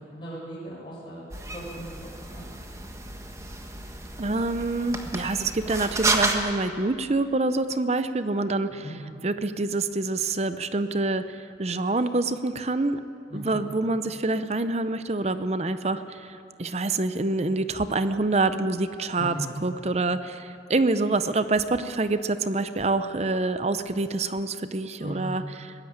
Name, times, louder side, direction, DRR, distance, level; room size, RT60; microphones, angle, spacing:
voice 1, 0.1-1.2 1.5-1.9 2.3-2.5 8.7-8.9 13.3-13.6 25.0-25.4, right 1 dB, 25° left, -7 dB, 7.1 m, -38 dB
sound 1, 1.3-6.4, right 2 dB, 15° right, 1.5 m, -31 dB
voice 2, 4.2-8.9 9.2-13.0 13.3-19.3 19.6-25.7, right 2 dB, 35° right, 11 dB, 0.7 m, -26 dB
21.5 x 16.5 x 8.8 m, 2.6 s
head